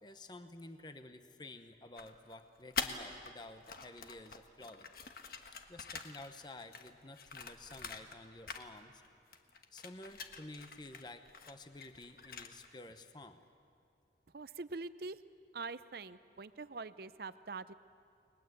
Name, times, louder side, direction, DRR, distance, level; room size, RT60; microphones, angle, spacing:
voice 1, 0.0-4.9 5.7-9.0 9.7-13.5, left 2 dB, 25° left, 8 dB, 1.0 m, -51 dB
sound 1, 2.0-3.3 3.6-8.2 8.5-9.1 9.3-12.8, left 5 dB, 50° left, 1.4 m, -45 dB
voice 2, 14.3-15.2 15.5-17.7, right 3 dB, 55° right, 13 dB, 0.6 m, -44 dB
30.0 x 21.0 x 8.1 m, 2.5 s
head